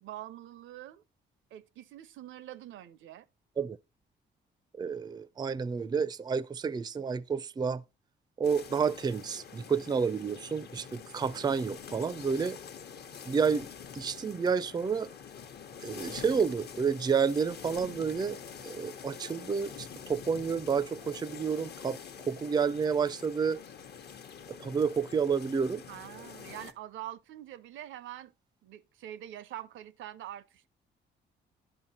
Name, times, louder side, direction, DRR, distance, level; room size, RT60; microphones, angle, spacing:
voice 1, 0.0-1.0 1.5-3.3 25.9-28.3 28.6-30.7, right 12 dB, 75° right, 0.5 m, -45 dB
voice 2, 4.8-7.8 8.4-12.6 13.3-13.7 13.9-15.1 15.8-18.4 18.6-22.0 22.3-23.6 24.6-25.8, right 6 dB, 20° right, 0.4 m, -30 dB
sound 1, 8.4-26.7, left 7 dB, 55° left, 1.0 m, -46 dB
10.5 x 5.4 x 4.2 m
cardioid pair, 90°, 20 cm